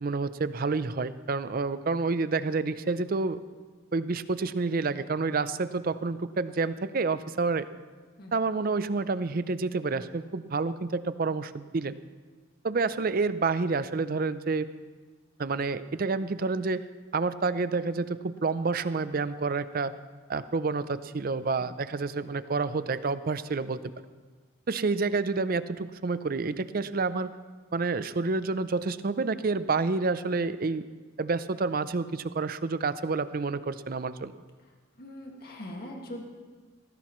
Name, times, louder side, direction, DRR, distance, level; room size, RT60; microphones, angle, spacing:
voice 1, 0.0-3.4 3.9-7.7 8.3-12.0 12.6-14.7 15.4-16.8 17.1-19.9 20.3-23.8 24.7-27.3 27.7-30.8 31.2-34.3, right 4 dB, 45° right, 14 dB, 0.5 m, -29 dB
voice 2, 35.0-36.2, left 1 dB, 50° left, 0 dB, 2.0 m, -41 dB
19.5 x 15.5 x 3.1 m, 1.4 s
head